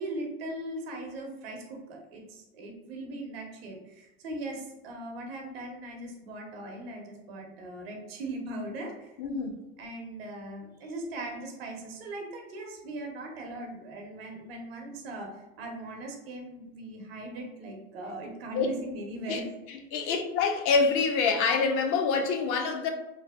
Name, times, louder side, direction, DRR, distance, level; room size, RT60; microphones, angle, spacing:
voice 1, 0.0-9.1 9.8-19.4 20.0-20.1, right 1 dB, 85° right, 0.8 m, -39 dB
voice 2, 9.2-9.5 18.5-18.7 19.3-19.4 19.9-22.9, left 5 dB, 50° left, 0.5 m, -26 dB
3.2 x 2.1 x 2.2 m
supercardioid pair, 120°, 29 cm